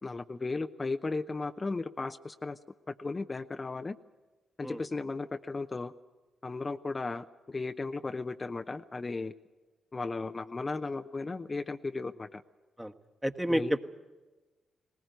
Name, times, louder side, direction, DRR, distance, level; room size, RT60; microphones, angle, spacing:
voice 1, 0.0-2.6 2.9-4.0 4.6-5.9 6.4-9.3 9.9-12.4 13.5-13.7, left 3 dB, 35° left, 8 dB, 0.7 m, -35 dB
voice 2, 13.2-13.8, equal, 5° right, 7 dB, 1.3 m, -29 dB
19.0 x 19.0 x 9.3 m, 1.2 s
hypercardioid pair, 40°, 0 cm